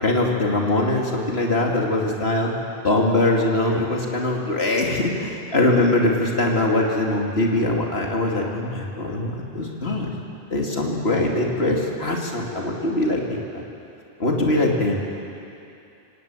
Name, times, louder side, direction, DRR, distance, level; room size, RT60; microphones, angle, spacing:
voice 1, 0.0-2.5 2.8-10.1 10.5-13.6 14.2-15.0, left 2 dB, 80° left, -1 dB, 2.9 m, -22 dB
26.5 x 16.5 x 9.0 m, 2.7 s
omnidirectional pair, 1.1 m